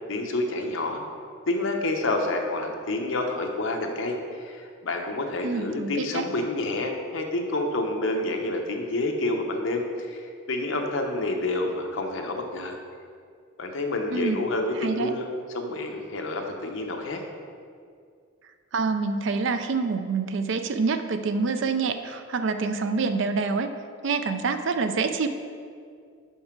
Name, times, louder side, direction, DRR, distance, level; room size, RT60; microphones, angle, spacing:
voice 1, 0.1-1.0 1.5-12.8 13.6-15.3 15.5-17.2, left 2 dB, 70° left, 3 dB, 0.8 m, -28 dB
voice 2, 5.4-6.3 14.1-14.4 14.8-15.1 18.7-23.7 24.0-25.3, right 4 dB, 60° right, 9 dB, 0.4 m, -26 dB
5.5 x 4.7 x 5.9 m, 2.2 s
head